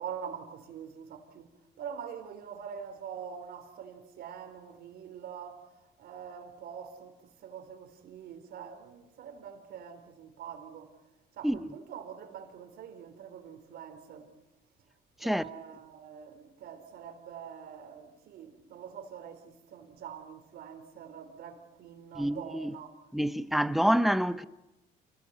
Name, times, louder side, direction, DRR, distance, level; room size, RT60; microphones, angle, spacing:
voice 1, 0.0-11.0 11.3-14.3 15.2-23.0, right 8 dB, 70° right, 4.0 m, -45 dB
voice 2, 22.2-22.7 23.1-24.4, equal, ahead, 0.9 m, -27 dB
28.5 x 19.0 x 8.1 m
cardioid pair, 110°, 17 cm